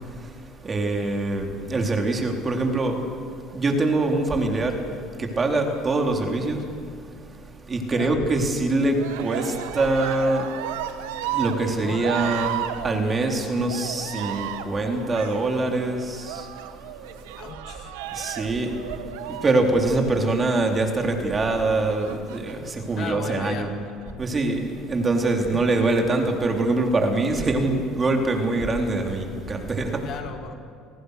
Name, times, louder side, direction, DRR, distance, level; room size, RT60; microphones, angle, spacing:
voice 1, 0.6-3.1 3.5-4.8 5.2-6.7 7.7-10.5 11.2-16.5 18.1-18.8 19.2-23.8 24.2-30.1, right 2 dB, 30° right, 3 dB, 3.8 m, -24 dB
voice 2, 7.9-8.2 11.8-12.1 17.4-18.0 22.9-23.7 25.5-25.6 30.0-30.5, left 7 dB, 60° left, 5 dB, 2.8 m, -36 dB
Cheering, 8.9-20.6 21.9-22.7 23.5-24.1, right 11 dB, 90° right, 1.3 m, -34 dB
29.5 x 19.0 x 6.7 m, 2.3 s
supercardioid pair, 90°, 0 cm